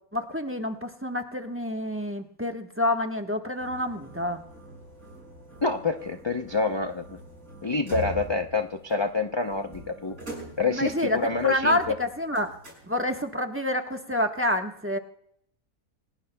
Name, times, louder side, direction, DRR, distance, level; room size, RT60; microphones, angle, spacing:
voice 1, 0.1-4.4 10.7-11.2 11.4-12.5 12.9-15.0, left 1 dB, 10° right, 3 dB, 1.0 m, -28 dB
sound 1, 3.6-13.3, equal, 65° right, 6.3 m, -43 dB
voice 2, 5.6-7.2 7.6-10.2 10.6-11.9, left 3 dB, 30° left, 5 dB, 0.4 m, -27 dB
28.0 x 18.5 x 2.3 m, 0.71 s
omnidirectional pair, 1.6 m